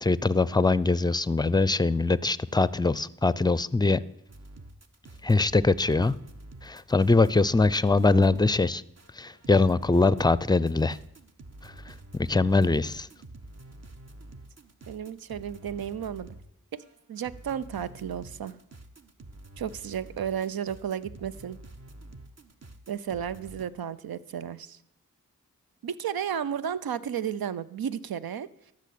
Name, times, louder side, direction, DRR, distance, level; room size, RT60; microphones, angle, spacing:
voice 1, 0.0-4.0 5.2-6.1 6.6-8.8 9.2-11.0 11.6-13.1, left 3 dB, 10° left, 19 dB, 0.5 m, -23 dB
sound 1, 4.3-16.5 16.8-23.7, right 2 dB, 45° right, 1.1 m, -48 dB
voice 2, 14.9-16.3 16.7-18.6 19.6-21.6 22.9-24.8 25.8-28.7, right 8 dB, 80° right, 15 dB, 0.6 m, -33 dB
12.5 x 6.5 x 8.4 m, 0.79 s
cardioid pair, 45°, 36 cm